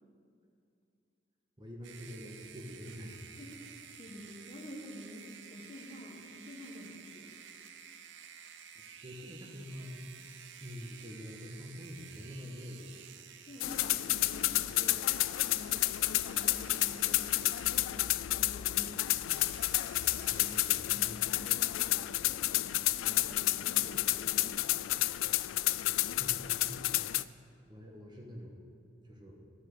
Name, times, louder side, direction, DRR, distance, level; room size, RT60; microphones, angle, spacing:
voice 1, 1.6-3.4 8.7-10.3 10.6-13.0 20.3-21.4 25.9-28.5 29.0-29.4, equal, 25° right, 0 dB, 1.4 m, -47 dB
sound 1, 1.8-18.2 19.3-20.8, right 8 dB, 65° right, 0.7 m, -52 dB
voice 2, 3.4-7.4 13.5-15.2 15.5-19.1 20.4-20.5 20.8-24.6, equal, 30° left, 1 dB, 1.3 m, -49 dB
sound 2, 13.6-27.2, left 17 dB, 80° left, 0.3 m, -31 dB
11.0 x 7.9 x 6.7 m, 2.5 s
head